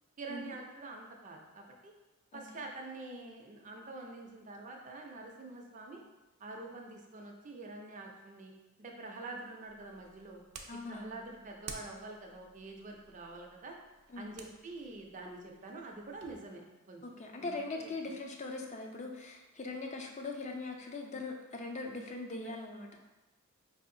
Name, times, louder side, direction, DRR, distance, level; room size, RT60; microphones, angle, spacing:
voice 1, 0.2-1.9 2.3-6.0 6.4-8.5 8.8-10.4 10.9-13.8 14.2-17.0 17.4-17.9 22.4-22.5, right 2 dB, 35° right, 1 dB, 0.5 m, -46 dB
voice 2, 2.3-2.6 10.7-11.1 14.1-14.3 17.0-23.0, left 3 dB, 30° left, 2 dB, 0.4 m, -41 dB
sound 1, 9.6-16.4, right 5 dB, 85° right, 0.5 m, -53 dB
4.8 x 2.7 x 2.6 m, 1.1 s
head